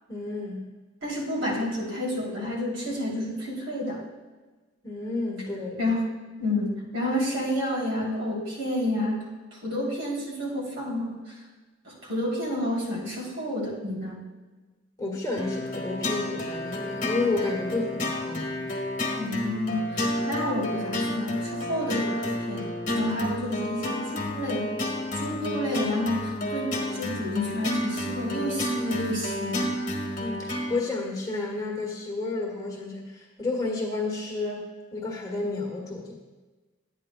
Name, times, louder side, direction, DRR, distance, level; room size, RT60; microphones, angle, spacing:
voice 1, 0.1-0.6 4.8-5.8 15.0-18.7 30.2-36.1, left 3 dB, 20° left, -2 dB, 1.5 m, -31 dB
voice 2, 1.0-4.0 5.8-6.0 6.4-11.3 11.8-14.2 19.2-22.7 22.9-24.7 25.1-29.7, left 1 dB, 75° right, -3 dB, 3.1 m, -30 dB
sound 1, 15.4-30.8, left 1 dB, 40° left, 1.4 m, -31 dB
12.0 x 8.9 x 2.3 m, 1.3 s
head